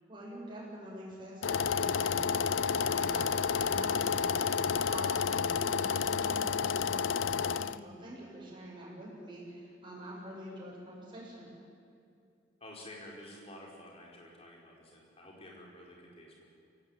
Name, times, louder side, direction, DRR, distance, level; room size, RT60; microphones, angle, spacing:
voice 1, 0.1-11.5, right 1 dB, 25° right, -5 dB, 7.1 m, -45 dB
sound 1, 1.4-7.8, left 6 dB, 80° left, 0.6 m, -30 dB
voice 2, 12.6-16.4, left 1 dB, 30° left, -2 dB, 5.0 m, -50 dB
23.0 x 17.0 x 9.3 m, 2.4 s
head